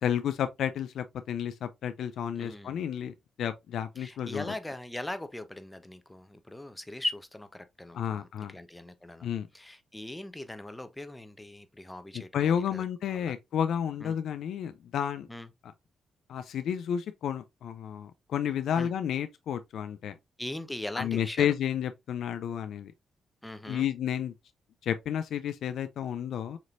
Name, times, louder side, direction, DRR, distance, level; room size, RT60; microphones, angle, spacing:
voice 1, 0.0-4.5 7.9-8.5 9.2-9.5 12.1-15.3 16.3-20.2 20.9-22.9 23.7-24.3 24.8-26.6, left 9 dB, 70° left, 0.4 m, -31 dB
voice 2, 2.3-2.8 4.0-13.3 14.0-14.2 15.3-15.5 18.8-18.9 20.4-21.5 23.4-23.9, left 1 dB, 15° left, 0.8 m, -40 dB
6.6 x 3.0 x 2.5 m
hypercardioid pair, 45°, 0 cm